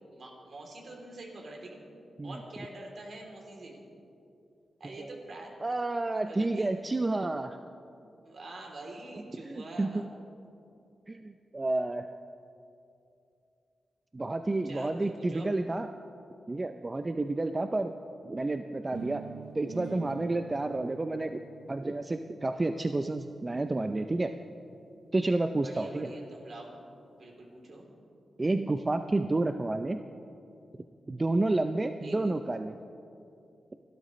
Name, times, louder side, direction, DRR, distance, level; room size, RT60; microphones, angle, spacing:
voice 1, 0.1-1.8 2.2-3.8 4.8-5.6 6.3-6.7 8.2-10.0 14.6-15.5 25.6-26.7 27.2-27.9 32.0-32.3, right 2 dB, 60° right, 0 dB, 3.1 m, -45 dB
voice 2, 5.6-7.6 9.4-10.1 11.1-12.1 14.1-15.9 16.5-17.9 18.2-19.3 19.5-21.4 21.7-24.3 25.1-26.1 28.4-30.0 31.1-32.7, right 2 dB, 25° right, 8 dB, 0.5 m, -30 dB
sound 1, 18.9-24.8, right 8 dB, 85° right, 0.5 m, -48 dB
28.5 x 12.0 x 3.2 m, 2.6 s
cardioid pair, 80°, 0 cm